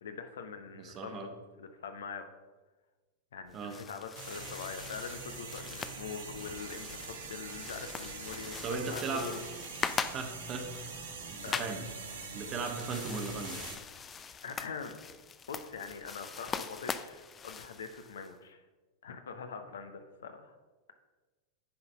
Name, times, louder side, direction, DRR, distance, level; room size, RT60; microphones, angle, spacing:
voice 1, 0.0-2.3 3.3-9.4 11.4-11.8 14.4-15.0 15.5-18.6 19.0-20.6, left 6 dB, 65° left, 8 dB, 0.7 m, -43 dB
voice 2, 0.8-1.3 3.5-3.8 8.6-9.3 10.1-10.7 11.3-11.8 12.3-13.6, right 4 dB, 30° right, 5 dB, 1.1 m, -37 dB
sound 1, 3.5-18.3, left 6 dB, 20° left, 0.4 m, -42 dB
sound 2, 4.2-13.8, right 5 dB, 65° right, 1.2 m, -44 dB
9.8 x 4.1 x 5.4 m, 1.2 s
figure-of-eight pair, 90°, 0 cm